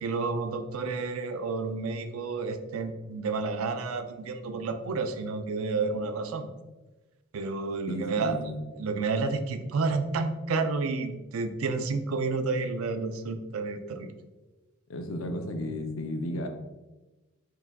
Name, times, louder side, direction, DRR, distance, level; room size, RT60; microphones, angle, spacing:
voice 1, 0.0-6.5 7.3-8.4 8.8-14.1, right 4 dB, 85° right, 8 dB, 0.4 m, -30 dB
voice 2, 7.9-8.6 14.9-16.5, left 1 dB, 75° left, 5 dB, 0.5 m, -33 dB
4.7 x 2.3 x 3.5 m, 1.1 s
head